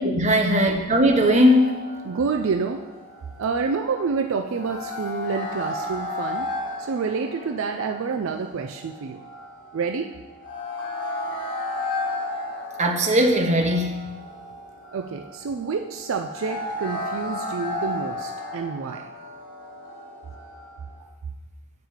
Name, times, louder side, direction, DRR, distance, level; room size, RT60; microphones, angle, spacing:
voice 1, 0.0-1.8 12.8-14.0, equal, 30° right, 2 dB, 0.8 m, -19 dB
sound 1, 1.2-21.1, left 2 dB, 55° left, 1.7 m, -34 dB
voice 2, 2.0-2.8 3.4-6.5 6.8-9.2 9.7-10.1 14.9-19.0, right 5 dB, 65° right, 4 dB, 0.4 m, -28 dB
8.0 x 4.8 x 4.9 m, 1.2 s
head